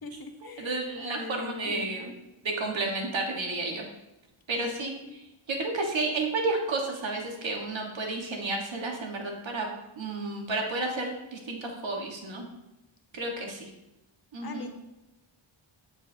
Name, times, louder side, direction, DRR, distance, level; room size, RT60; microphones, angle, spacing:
voice 1, 0.0-2.1 4.5-5.2 14.4-14.7, left 4 dB, 50° left, 5 dB, 0.9 m, -41 dB
voice 2, 0.6-2.1 2.4-3.8 4.5-9.7 10.0-12.5 13.1-13.7 14.3-14.7, right 2 dB, 65° right, 1 dB, 1.4 m, -31 dB
7.6 x 7.3 x 2.7 m, 0.97 s
wide cardioid pair, 100°, 49 cm